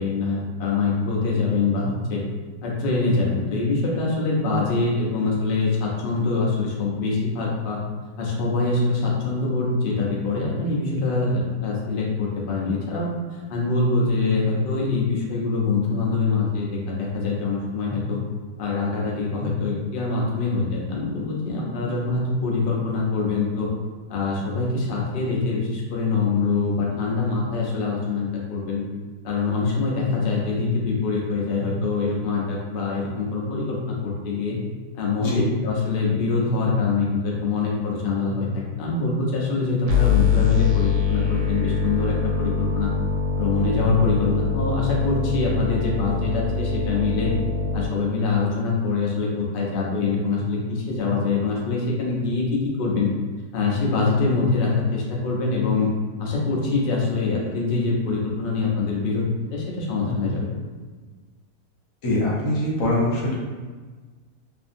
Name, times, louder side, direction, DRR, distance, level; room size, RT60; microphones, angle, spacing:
voice 1, 0.0-2.2 2.6-7.8 8.2-18.2 18.6-23.7 24.1-28.8 29.2-34.6 34.9-35.3 35.6-42.9 43.4-47.3 47.7-53.1 53.5-55.9 56.2-59.3 59.5-60.5, left 4 dB, 80° left, -3 dB, 0.4 m, -24 dB
sound 1, 39.9-47.9, left 5 dB, 90° right, 1.1 m, -23 dB
voice 2, 62.0-63.4, left 1 dB, 60° left, -5 dB, 1.1 m, -23 dB
2.6 x 2.5 x 2.5 m, 1.4 s
omnidirectional pair, 1.7 m